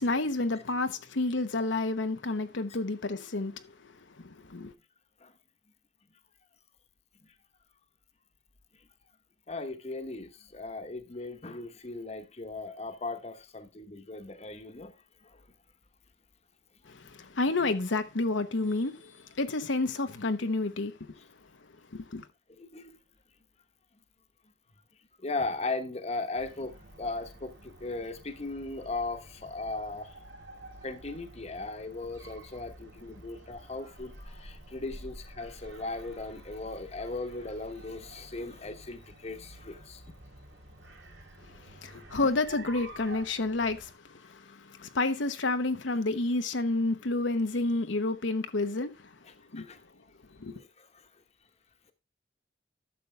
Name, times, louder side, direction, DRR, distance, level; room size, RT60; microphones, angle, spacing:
voice 1, 0.0-3.6 4.2-4.7 16.9-20.9 21.9-22.3 41.8-48.9 49.5-49.7 50.4-50.6, left 2 dB, 90° left, 1.0 m, -30 dB
voice 2, 9.5-14.9 15.2-15.4 22.5-23.0 25.2-30.3 30.8-40.0 41.6-42.0 49.3-49.8 50.6-51.1, left 3 dB, 35° left, 1.1 m, -38 dB
sound 1, 26.3-43.9, right 1 dB, 80° right, 3.5 m, -50 dB
12.0 x 7.0 x 3.3 m
head